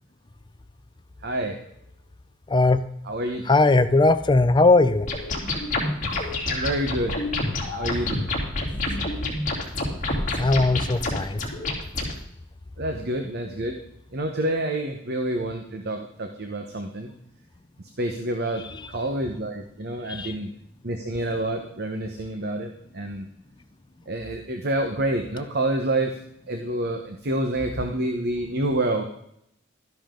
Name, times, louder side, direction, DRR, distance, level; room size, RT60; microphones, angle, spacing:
voice 1, 1.2-1.6 3.0-3.4 6.5-7.2 7.7-8.3 12.8-13.8 14.1-17.1 18.0-20.5 20.8-23.3 24.1-26.2 26.5-29.0, right 1 dB, 55° right, 5 dB, 1.2 m, -28 dB
voice 2, 3.5-5.1 10.4-11.4 20.1-20.3, left 2 dB, 25° left, 12 dB, 0.5 m, -19 dB
sound 1, 5.1-12.1, left 2 dB, 40° left, 3.2 m, -28 dB
13.0 x 10.5 x 3.9 m, 0.74 s
head